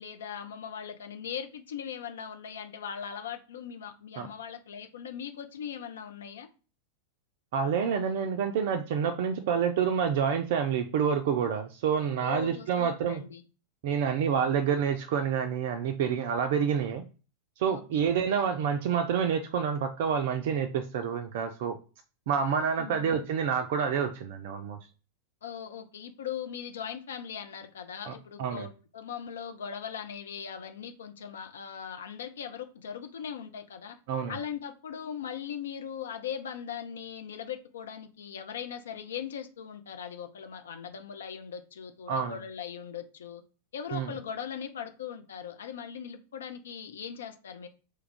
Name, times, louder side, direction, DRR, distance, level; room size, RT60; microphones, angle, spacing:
voice 1, 0.0-6.5 12.2-13.4 17.7-18.0 22.8-23.2 25.4-34.0 34.3-43.4 43.7-47.7, left 8 dB, 65° left, 0.5 m, -39 dB
voice 2, 7.5-13.2 13.8-17.0 17.6-21.8 22.3-24.8 28.1-28.2 28.4-28.7 34.1-34.4 42.1-42.4 43.9-44.1, right 7 dB, 50° right, 0.3 m, -28 dB
3.1 x 2.3 x 3.5 m
figure-of-eight pair, 90°, 0 cm